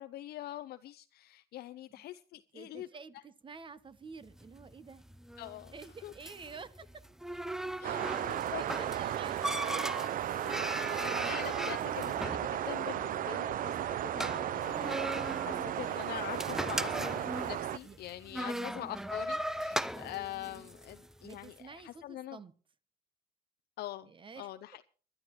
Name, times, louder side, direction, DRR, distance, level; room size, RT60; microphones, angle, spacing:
voice 1, 0.0-2.9 3.1-3.2 5.4-5.7 6.0-6.1 7.8-8.6 11.0-22.4 23.8-24.1 24.4-24.8, left 14 dB, 70° left, 0.6 m, -44 dB
voice 2, 2.5-5.0 5.7-7.0 8.0-8.3 8.5-9.8 10.9-11.2 17.8-18.0 18.5-18.8 19.8-20.2 21.2-22.5 24.0-24.5, right 5 dB, 30° right, 1.0 m, -50 dB
sound 1, 4.2-21.5, right 1 dB, 5° right, 0.5 m, -39 dB
sound 2, 7.8-17.8, right 11 dB, 55° right, 0.6 m, -35 dB
26.0 x 11.0 x 3.1 m
cardioid pair, 110°, 17 cm